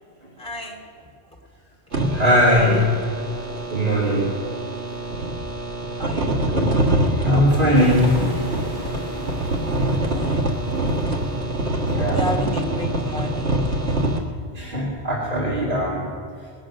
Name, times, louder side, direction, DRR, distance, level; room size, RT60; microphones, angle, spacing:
voice 1, 0.4-0.8 2.1-3.0 6.0-6.7 9.6-10.5 12.0-13.6, equal, 5° left, -1 dB, 2.6 m, -32 dB
sound 1, 1.9-14.2, right 1 dB, 80° right, 1.9 m, -25 dB
voice 2, 2.1-2.9 3.7-4.5 6.5-6.7 7.1-8.4 11.9-12.2 14.5-16.1, equal, 50° right, -7 dB, 2.9 m, -20 dB
sound 2, 7.7-12.0, right 1 dB, 25° right, 2.7 m, -35 dB
20.5 x 9.0 x 6.3 m, 2.3 s
omnidirectional pair, 1.1 m